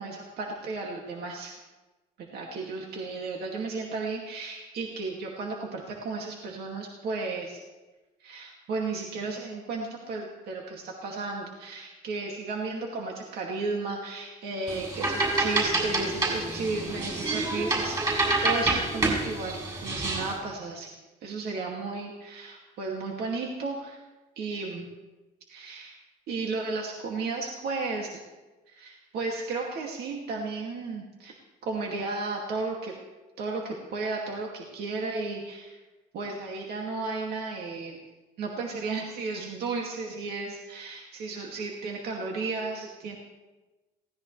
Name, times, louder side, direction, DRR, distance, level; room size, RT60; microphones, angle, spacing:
voice 1, 0.0-1.6 2.2-7.6 8.2-20.9 21.2-24.0 24.4-24.9 25.5-26.0 26.3-28.2 28.7-31.4 31.6-32.9 33.4-35.8 36.1-38.0 38.4-43.2, right 3 dB, 70° right, -1 dB, 2.4 m, -34 dB
sound 1, 14.7-20.4, right 2 dB, 25° right, 6.7 m, -28 dB
22.0 x 17.5 x 3.3 m, 1.2 s
cardioid pair, 110°, 17 cm